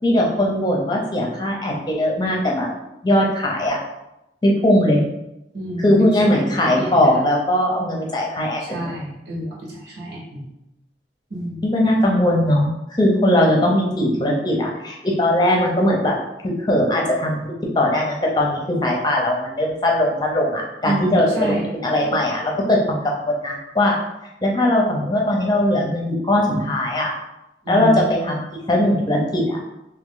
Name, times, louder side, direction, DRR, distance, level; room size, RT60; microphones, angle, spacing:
voice 1, 0.0-2.7 3.0-3.8 4.4-5.0 5.8-8.9 11.6-16.1 16.4-24.0 24.4-27.1 27.7-28.4 28.7-29.6, left 1 dB, 25° left, -1 dB, 0.6 m, -19 dB
voice 2, 5.5-7.2 8.6-10.4 11.3-11.6 20.8-21.7 27.6-28.0, equal, 85° right, -5 dB, 1.4 m, -29 dB
3.0 x 2.9 x 3.8 m, 0.90 s
head